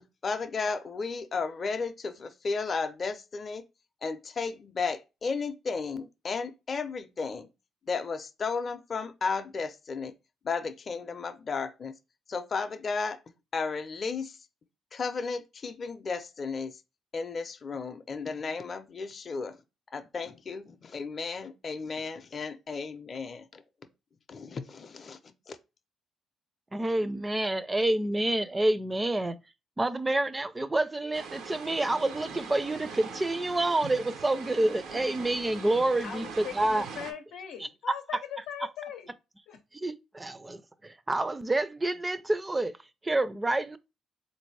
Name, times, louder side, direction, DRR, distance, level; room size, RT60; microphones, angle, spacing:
voice 1, 0.2-3.7 4.0-7.5 7.8-10.2 10.4-12.0 12.3-13.2 13.5-14.5 14.9-16.8 17.1-19.6 19.9-23.6 24.3-25.6, left 4 dB, 40° left, 0.5 m, -34 dB
voice 2, 26.7-29.4 29.8-36.9 37.6-37.7 39.7-42.7 43.0-43.8, right 2 dB, 20° right, 0.4 m, -28 dB
sound 1, 31.1-37.1, right 5 dB, 85° right, 0.7 m, -42 dB
voice 3, 36.0-39.1 39.5-39.6, left 9 dB, 90° left, 0.6 m, -40 dB
3.9 x 2.6 x 3.2 m
cardioid pair, 90°, 0 cm